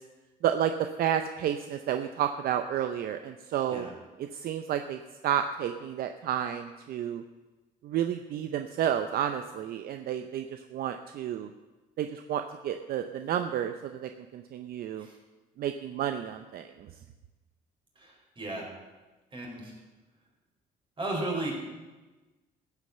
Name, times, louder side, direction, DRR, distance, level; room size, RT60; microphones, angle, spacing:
voice 1, 0.4-3.9 4.3-7.2 7.8-10.5 10.7-11.5 12.0-15.1 15.6-16.9, right 10 dB, 65° right, 7 dB, 0.7 m, -31 dB
voice 2, 18.0-18.7 19.3-19.7 21.0-21.6, right 2 dB, 30° right, -1 dB, 4.8 m, -35 dB
14.5 x 8.3 x 6.7 m, 1.2 s
cardioid pair, 110°, 17 cm